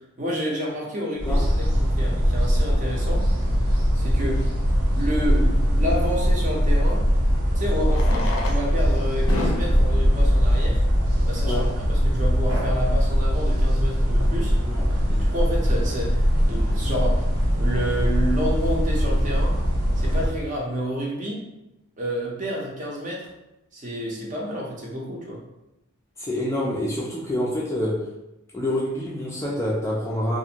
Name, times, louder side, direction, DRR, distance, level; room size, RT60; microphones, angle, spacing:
voice 1, 0.2-3.3 3.9-4.4 4.9-7.0 7.5-10.8 11.3-14.6 15.1-16.2 16.5-17.2 17.6-19.6 20.0-21.4 22.0-23.3 23.7-25.4, equal, 35° right, -3 dB, 0.6 m, -29 dB
sound 1, 1.2-20.4, equal, 80° right, 0.6 m, -21 dB
Fireworks, 4.3-4.4 6.6-6.7 7.8-11.5 12.3-12.4 12.6-12.7 12.9-13.0 13.5-13.8, left 2 dB, 70° left, 0.5 m, -34 dB
voice 2, 11.5-11.8 14.7-14.9 26.2-28.0 28.5-30.4, left 1 dB, 15° left, -4 dB, 0.3 m, -27 dB
2.5 x 2.5 x 2.8 m, 0.93 s
head